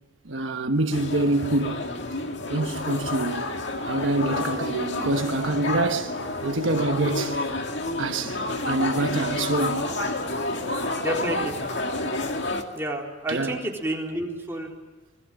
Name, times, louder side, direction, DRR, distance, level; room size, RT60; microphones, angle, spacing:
voice 1, 0.2-1.9 2.5-3.4 3.8-7.4 8.0-8.4 8.6-9.9 13.3-13.7, right 2 dB, 75° right, 1.2 m, -26 dB
sound 1, 0.9-12.6, left 2 dB, 60° left, 2.3 m, -29 dB
voice 2, 11.0-11.6 12.7-14.7, right 1 dB, 10° right, 4.0 m, -29 dB
26.5 x 21.0 x 9.2 m
head